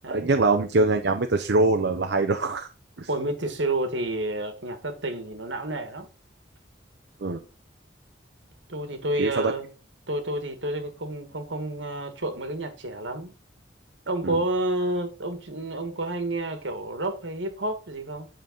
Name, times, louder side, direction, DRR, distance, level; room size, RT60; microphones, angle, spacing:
voice 1, 0.1-2.7 3.0-3.1 7.2-7.4 9.2-9.5 14.2-14.4, right 3 dB, 65° right, 0.7 m, -23 dB
voice 2, 3.1-6.1 8.7-9.7 10.1-13.3 14.1-18.3, right 1 dB, 80° right, 1.8 m, -30 dB
10.0 x 5.3 x 3.9 m
head